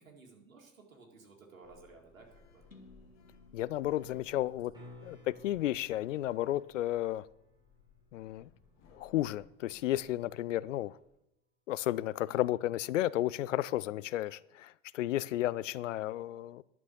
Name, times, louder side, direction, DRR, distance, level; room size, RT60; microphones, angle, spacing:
voice 1, 0.0-2.6 4.1-4.4 12.3-12.6, right 4 dB, 75° right, 2.2 m, -56 dB
Sliding door, 1.6-11.2, left 5 dB, 40° left, 2.0 m, -64 dB
sound 1, 2.7-6.6, left 3 dB, 85° left, 1.1 m, -62 dB
voice 2, 3.5-4.7 5.0-7.3 8.1-8.5 8.9-11.0 11.7-16.6, left 14 dB, 65° left, 0.5 m, -33 dB
sound 2, 4.7-10.8 15.4-15.5, left 1 dB, 10° right, 5.2 m, -59 dB
11.0 x 6.2 x 6.9 m
figure-of-eight pair, 80°, 40 cm